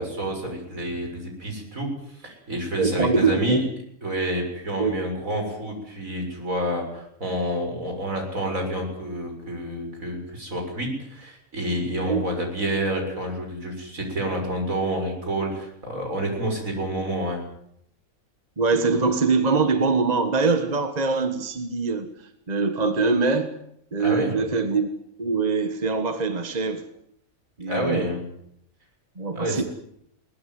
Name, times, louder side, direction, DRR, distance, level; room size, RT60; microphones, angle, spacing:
voice 1, 0.0-1.9 2.2-3.6 4.0-17.4 24.0-24.3 27.7-28.3 29.3-29.6, right 1 dB, 70° right, 3 dB, 7.1 m, -28 dB
voice 2, 2.8-3.6 4.8-5.0 12.1-12.2 18.6-22.1 22.5-23.5 23.9-24.9 25.2-26.8 27.6-28.1 29.2-29.6, right 4 dB, 30° right, 8 dB, 1.6 m, -23 dB
22.0 x 19.5 x 9.4 m, 0.73 s
omnidirectional pair, 1.5 m